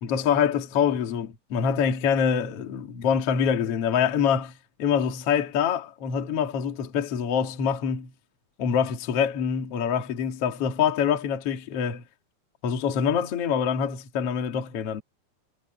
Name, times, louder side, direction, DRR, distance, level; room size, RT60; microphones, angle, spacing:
voice 1, 0.0-4.5 4.8-8.1 8.6-12.0 12.6-15.0, left 7 dB, 45° left, 2.1 m, -25 dB
omnidirectional pair, 5.3 m